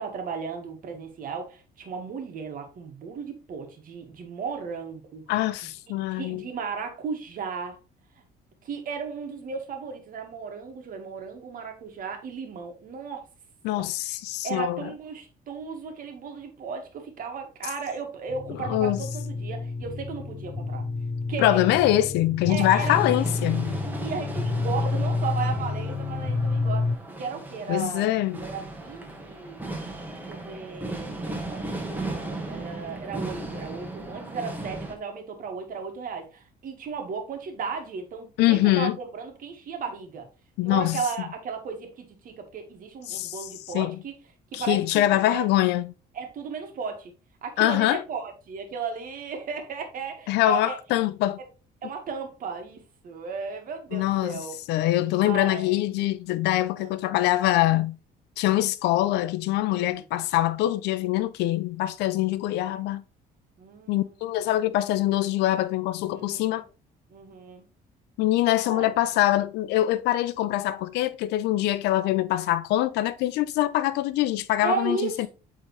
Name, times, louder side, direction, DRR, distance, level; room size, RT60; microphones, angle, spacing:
voice 1, 0.0-5.3 6.1-7.8 8.6-13.2 13.8-14.2 14.4-20.8 21.3-21.6 22.5-23.0 23.8-28.1 28.4-29.6 30.2-40.3 40.6-44.1 44.5-45.0 45.3-45.4 46.1-47.1 47.4-50.8 51.8-54.6 55.1-55.7 56.8-57.0 59.7-60.0 63.6-64.3 66.1-66.6 67.1-67.7 68.6-68.9 74.6-75.3, right 5 dB, 55° right, 1.8 m, -35 dB
voice 2, 5.3-6.4 13.6-14.9 18.6-19.0 21.4-23.8 27.7-28.4 38.4-39.0 40.6-41.0 43.1-43.5 43.7-44.0 44.5-45.9 47.6-48.0 50.3-51.4 53.9-54.3 54.7-58.0 58.4-63.0 63.9-66.6 68.2-75.3, left 14 dB, 85° left, 0.5 m, -24 dB
sound 1, 18.3-27.0, left 3 dB, 30° left, 1.3 m, -29 dB
sound 2, 22.8-34.9, right 2 dB, 10° right, 1.6 m, -36 dB
8.1 x 3.7 x 3.2 m
cardioid pair, 110°, 17 cm